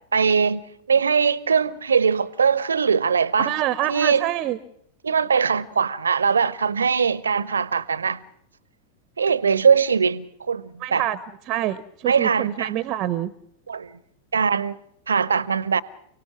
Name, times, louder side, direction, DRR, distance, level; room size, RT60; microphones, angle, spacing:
voice 1, 0.1-0.6 0.9-3.5 3.9-4.2 5.0-8.2 9.2-11.0 12.1-12.7 13.7-14.0 14.3-14.8 15.1-15.8, right 6 dB, 70° right, 0.8 m, -21 dB
voice 2, 3.4-4.6 10.8-11.2 11.5-13.3, right 13 dB, 35° right, 0.8 m, -26 dB
29.5 x 18.0 x 6.0 m
figure-of-eight pair, 90°, 0 cm